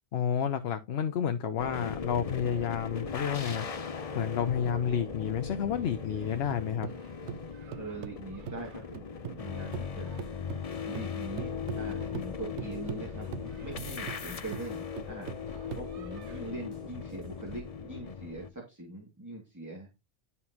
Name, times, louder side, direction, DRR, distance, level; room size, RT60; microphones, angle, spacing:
voice 1, 0.1-3.7 4.1-6.9, left 8 dB, 65° left, 0.9 m, -30 dB
sound 1, 1.6-18.5, left 6 dB, 40° left, 0.7 m, -39 dB
sound 2, 6.1-9.5 9.7-16.4, right 12 dB, 90° right, 0.9 m, -43 dB
voice 2, 7.7-10.2 10.8-15.3 15.8-19.9, right 2 dB, 15° right, 2.3 m, -42 dB
sound 3, 9.7-17.7, left 2 dB, 40° right, 3.4 m, -53 dB
11.0 x 5.6 x 2.9 m
omnidirectional pair, 1.2 m